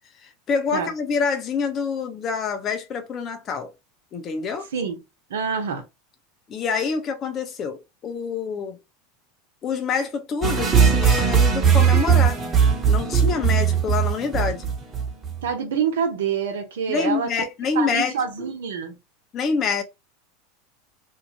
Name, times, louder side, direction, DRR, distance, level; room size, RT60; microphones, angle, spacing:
voice 1, 0.2-3.7 4.1-4.7 6.5-8.8 9.6-12.4 12.8-14.7 16.9-18.5 19.3-19.8, left 5 dB, 40° left, 0.8 m, -26 dB
voice 2, 5.3-5.8 15.4-17.3 17.7-19.0, right 6 dB, 85° right, 1.0 m, -26 dB
sound 1, 10.4-15.4, right 7 dB, 25° right, 1.1 m, -19 dB
2.8 x 2.5 x 2.8 m
hypercardioid pair, 110°, 0 cm